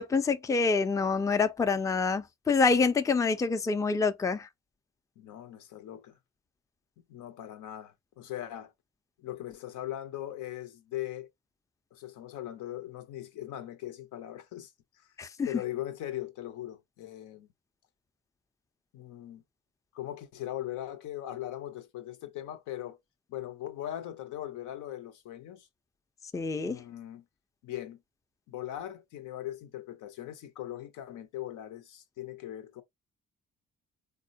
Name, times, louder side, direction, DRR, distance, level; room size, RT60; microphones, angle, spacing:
voice 1, 0.0-4.5 15.2-15.5 26.3-26.8, left 4 dB, 10° left, 0.4 m, -26 dB
voice 2, 5.2-6.2 7.1-8.7 9.2-11.3 11.9-14.7 15.0-15.1 15.4-17.5 18.9-19.4 19.9-23.0 23.3-25.7 26.6-27.2 27.6-28.0 28.5-32.8, left 13 dB, 80° left, 0.7 m, -40 dB
3.6 x 2.2 x 2.5 m
cardioid pair, 90°, 30 cm